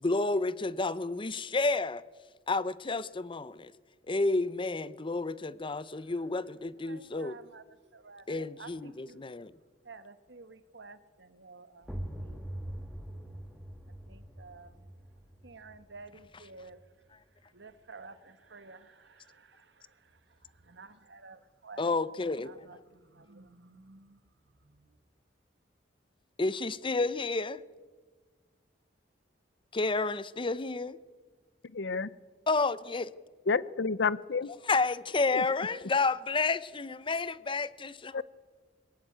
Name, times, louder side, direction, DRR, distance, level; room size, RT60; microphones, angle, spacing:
voice 1, 0.0-2.0 2.5-3.7 4.1-7.4 8.3-9.5 16.3-16.5 21.8-22.5 26.4-27.6 29.7-31.0 32.5-33.1 34.5-38.2, left 3 dB, 30° left, 0.7 m, -30 dB
voice 2, 6.9-7.6 7.9-9.2 9.8-12.5 14.1-14.7 15.4-16.8 17.5-19.5 20.7-21.9 22.5-22.8 23.1-24.1, right 3 dB, 75° right, 1.5 m, -51 dB
sound 1, 11.8-17.4, right 1 dB, ahead, 2.6 m, -43 dB
voice 3, 31.7-32.1 33.5-34.5 35.3-35.4 38.1-38.2, left 4 dB, 70° left, 0.7 m, -29 dB
21.5 x 19.0 x 8.8 m
head